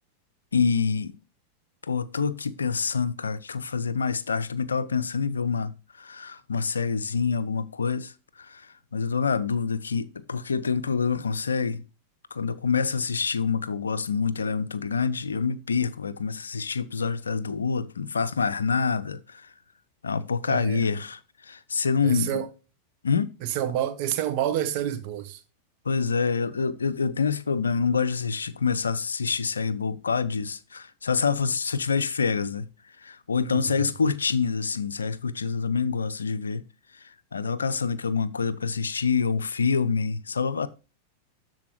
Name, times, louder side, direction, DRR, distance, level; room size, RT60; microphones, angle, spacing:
voice 1, 0.5-1.1 1.9-8.1 8.4-8.7 8.9-11.8 12.3-19.5 20.0-22.3 23.0-23.3 25.9-32.7 33.0-36.6 37.3-40.7, left 5 dB, 75° left, 0.5 m, -26 dB
voice 2, 20.5-20.8 22.0-22.5 23.4-25.4 33.4-33.9, right 11 dB, 45° right, 1.2 m, -29 dB
12.5 x 4.3 x 3.0 m
figure-of-eight pair, 90°, 0 cm